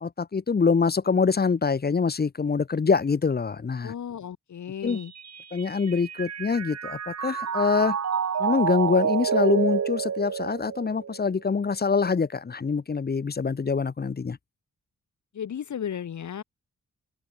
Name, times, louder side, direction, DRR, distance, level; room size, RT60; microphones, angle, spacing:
voice 1, 0.0-3.9 4.8-5.0 5.5-8.0 8.4-14.4, left 5 dB, 35° left, 1.2 m, -25 dB
voice 2, 3.8-5.1 15.3-16.4, left 8 dB, 75° left, 7.9 m, -34 dB
Mallet percussion, 4.9-11.3, right 7 dB, 60° right, 5.9 m, -29 dB
open air
cardioid pair, 90°, 29 cm